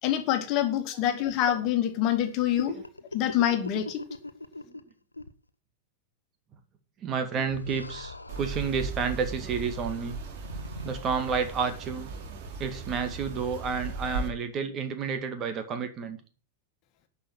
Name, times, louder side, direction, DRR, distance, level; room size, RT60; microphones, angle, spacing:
voice 1, 0.0-2.8 3.1-4.0, left 11 dB, 40° left, 1.8 m, -26 dB
sound 1, 2.6-4.9 5.1-5.3 7.5-8.7 10.4-11.0, left 2 dB, 80° left, 0.8 m, -39 dB
voice 2, 7.0-10.2 10.8-12.1 12.6-16.2, right 6 dB, 30° right, 2.1 m, -30 dB
sound 2, 8.3-14.3, right 3 dB, 50° right, 2.5 m, -37 dB
11.5 x 5.8 x 7.2 m
figure-of-eight pair, 90°, 0 cm